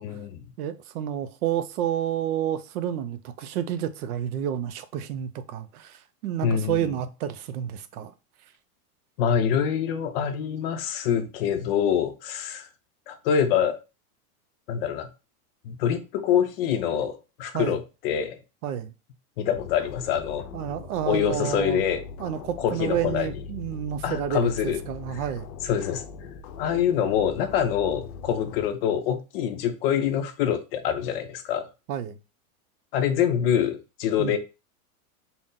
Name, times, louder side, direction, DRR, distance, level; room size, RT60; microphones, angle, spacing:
voice 1, 0.0-0.4 6.4-6.8 9.2-12.7 13.1-13.8 14.7-15.1 15.6-18.4 19.4-20.4 21.1-22.0 22.6-23.3 24.0-24.8 25.6-26.1 26.6-31.7 32.9-34.4, left 8 dB, 45° left, 0.5 m, -25 dB
voice 2, 0.6-8.1 17.5-17.8 18.6-18.9 20.5-21.8 22.2-25.5 31.9-32.2 34.2-34.4, right 10 dB, 75° right, 0.6 m, -30 dB
sound 1, 19.5-28.7, left 5 dB, 80° left, 0.7 m, -41 dB
3.9 x 2.0 x 3.7 m
supercardioid pair, 155°, 44 cm